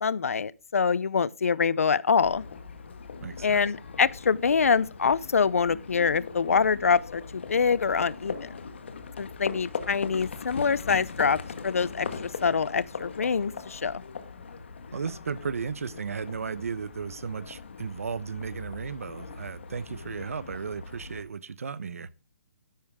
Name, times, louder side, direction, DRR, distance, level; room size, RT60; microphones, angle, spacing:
voice 1, 0.0-2.4 3.4-8.5 9.2-12.1 12.4-14.0, left 6 dB, 70° left, 0.7 m, -25 dB
Livestock farm animals working animals, 2.2-21.2, left 5 dB, 50° left, 1.6 m, -40 dB
voice 2, 3.2-3.7 14.9-22.1, right 5 dB, 70° right, 0.9 m, -35 dB
12.5 x 10.5 x 3.6 m
hypercardioid pair, 175°, 8 cm